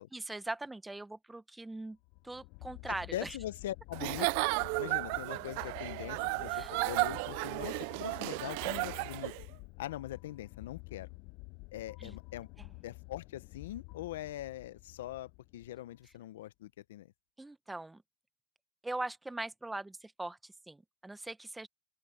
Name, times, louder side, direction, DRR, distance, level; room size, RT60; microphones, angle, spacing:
voice 1, 0.1-2.0 2.2-3.4 6.5-6.8 12.0-12.2 12.6-12.7 17.4-18.0 18.8-21.7, right 2 dB, 5° right, 1.1 m, -41 dB
sound 1, 2.0-16.2, left 27 dB, 55° left, 0.8 m, -50 dB
voice 2, 3.1-4.3 4.8-9.3 9.8-11.1 11.7-12.5 12.8-17.1, left 14 dB, 75° left, 1.0 m, -42 dB
Giggle / Chuckle chortle, 3.9-9.4, right 27 dB, 60° right, 0.7 m, -34 dB
open air
hypercardioid pair, 110°, 0 cm